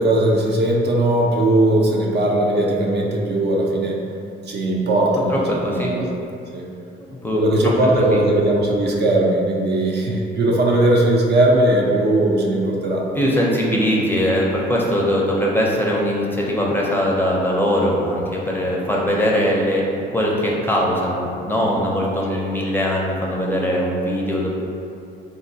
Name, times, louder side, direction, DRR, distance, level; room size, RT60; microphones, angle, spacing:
voice 1, 0.0-4.0 4.5-6.0 6.5-6.7 7.3-13.1 22.3-22.5, right 1 dB, 60° right, -2 dB, 0.5 m, -18 dB
voice 2, 5.3-5.9 7.1-7.4 8.1-8.2 13.2-24.5, equal, 10° left, -3 dB, 0.5 m, -21 dB
3.6 x 2.2 x 2.6 m, 2.5 s
cardioid pair, 90°, 20 cm